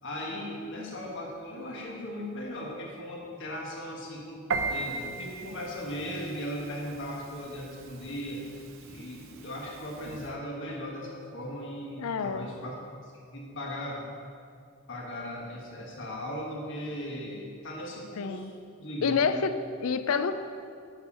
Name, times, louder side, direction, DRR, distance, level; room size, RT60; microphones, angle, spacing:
voice 1, 0.0-12.7 13.0-14.0 14.9-18.5 18.8-19.3, equal, 55° left, -2 dB, 1.4 m, -38 dB
Piano, 4.5-10.3, right 4 dB, 60° right, 0.7 m, -38 dB
voice 2, 12.0-12.5 18.2-18.5 19.0-19.5 19.8-20.3, left 5 dB, 70° left, 11 dB, 0.5 m, -27 dB
7.8 x 7.0 x 5.5 m, 2.3 s
head